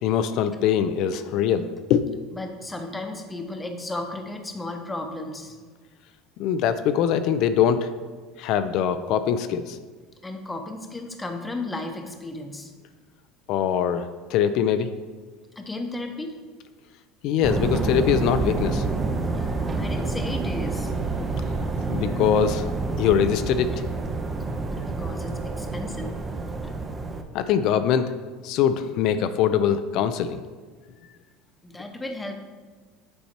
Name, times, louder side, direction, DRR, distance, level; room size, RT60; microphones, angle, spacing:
voice 1, 0.0-2.0 6.4-7.9 8.4-9.8 13.5-14.9 17.2-18.8 21.9-22.7 23.0-23.7 27.3-28.1 28.4-30.4, left 8 dB, 60° left, 10 dB, 0.4 m, -22 dB
voice 2, 2.3-5.6 10.2-12.7 15.6-16.4 19.3-19.5 19.8-20.9 24.7-26.1 26.6-26.7 31.6-32.3, left 2 dB, 10° left, 5 dB, 0.8 m, -34 dB
sound 1, 17.4-27.2, right 3 dB, 20° right, 0.6 m, -28 dB
8.5 x 4.3 x 4.4 m, 1.4 s
supercardioid pair, 125°, 0 cm